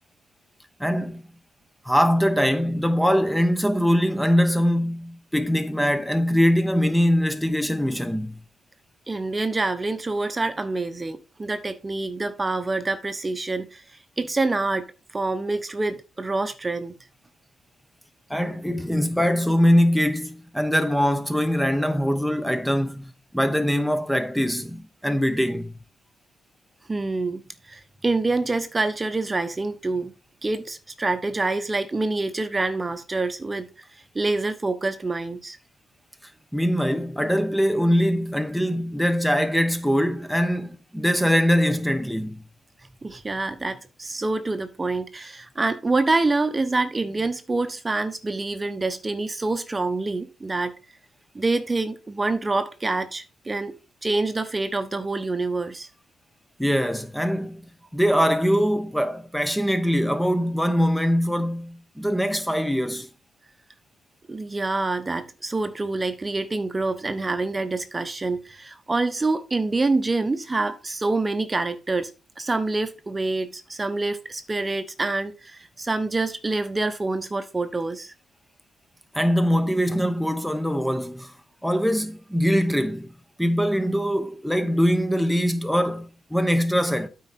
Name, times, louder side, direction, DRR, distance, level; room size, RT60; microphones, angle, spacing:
voice 1, 0.8-1.2 1.8-8.4 18.3-25.8 36.5-42.4 56.6-57.6 57.9-63.1 79.1-81.3 81.6-83.1 83.4-87.1, equal, ahead, 1.0 m, -22 dB
voice 2, 9.1-13.8 14.2-14.9 15.1-16.9 26.9-27.4 27.7-30.1 30.4-33.7 34.1-35.6 43.0-50.7 51.3-53.7 54.0-55.9 64.3-72.1 72.4-78.1, right 3 dB, 25° right, 1.0 m, -26 dB
8.9 x 4.8 x 4.4 m
cardioid pair, 70°, 0 cm